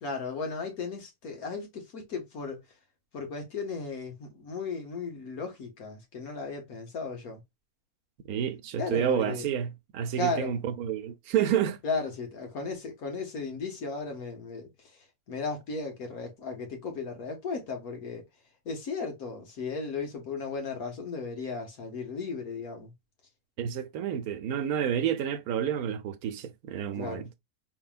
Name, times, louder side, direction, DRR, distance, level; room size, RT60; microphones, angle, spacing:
voice 1, 0.0-2.6 3.1-7.4 8.8-9.5 10.2-10.5 11.8-14.7 15.3-18.3 18.7-22.9 27.0-27.3, left 4 dB, 75° left, 1.9 m, -35 dB
voice 2, 8.3-11.8 23.6-27.3, right 9 dB, 80° right, 1.1 m, -29 dB
4.5 x 3.4 x 2.3 m
omnidirectional pair, 1.5 m